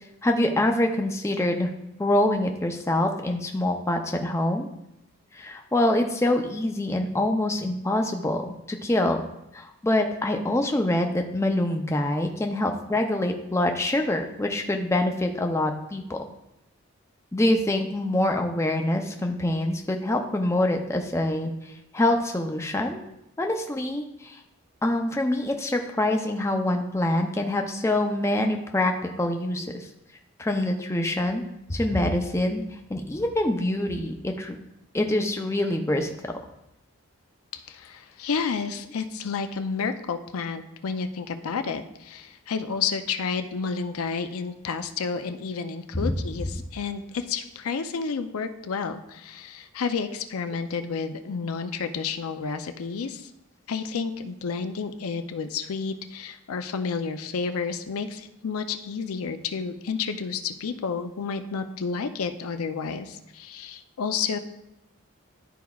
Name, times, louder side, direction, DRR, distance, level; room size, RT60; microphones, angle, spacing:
voice 1, 0.2-1.7 2.0-4.7 5.3-9.2 9.5-16.2 17.3-23.0 23.4-24.4 24.8-29.9 30.4-31.4 31.7-32.6 32.9-34.6 34.9-36.3 46.0-46.1, left 1 dB, 15° left, 4 dB, 0.4 m, -25 dB
voice 2, 37.5-53.3 53.7-64.4, left 5 dB, 85° left, 9 dB, 0.5 m, -31 dB
11.5 x 4.7 x 2.3 m, 0.84 s
head